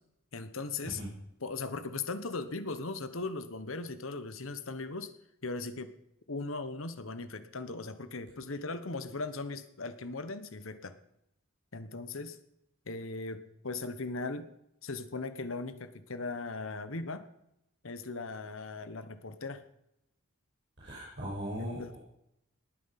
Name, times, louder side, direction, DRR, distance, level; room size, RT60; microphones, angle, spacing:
voice 1, 0.3-1.0 1.4-5.1 5.4-5.9 6.3-10.9 11.7-12.4 12.9-14.5 14.8-17.3 17.8-19.6 21.6-22.0, left 3 dB, 70° left, 11 dB, 1.2 m, -38 dB
voice 2, 20.8-22.0, equal, 55° right, -7 dB, 6.3 m, -38 dB
19.5 x 9.3 x 5.9 m, 0.82 s
head